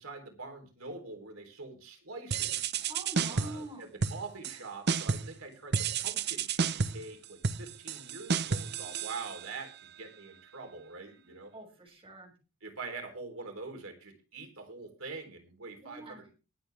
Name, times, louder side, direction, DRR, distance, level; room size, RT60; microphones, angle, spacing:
voice 1, 0.0-2.7 3.3-9.7 10.0-11.5 12.6-16.4, right 4 dB, 90° right, 4 dB, 3.8 m, -44 dB
sound 1, 2.3-3.7 4.0-4.6 4.9-5.4 5.7-9.7, right 5 dB, 50° right, 0.7 m, -32 dB
voice 2, 2.9-3.9 11.5-12.3 15.8-16.2, right 2 dB, 25° right, 2 dB, 6.1 m, -45 dB
22.5 x 7.8 x 3.4 m, 0.33 s
head